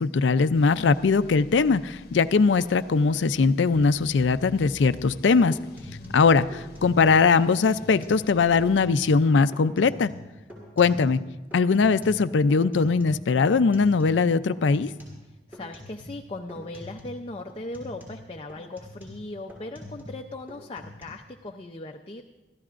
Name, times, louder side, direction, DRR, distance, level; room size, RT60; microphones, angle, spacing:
voice 1, 0.0-5.6 6.1-10.1 10.8-11.2 11.5-14.9, left 4 dB, 85° left, 14 dB, 0.5 m, -21 dB
sound 1, 0.5-8.8, left 1 dB, 55° left, 1.0 m, -49 dB
sound 2, 5.0-5.2 5.5-7.2 7.5-8.2 8.5-9.2 9.5-11.2 11.5-14.2 14.5-15.2 15.5-16.2 16.5-17.2 17.5-20.2 20.5-21.0, left 1 dB, 10° right, 5.2 m, -44 dB
voice 2, 6.0-6.5 15.2-22.2, left 2 dB, 30° left, 2 dB, 0.6 m, -39 dB
26.5 x 14.0 x 2.5 m, 1.2 s
head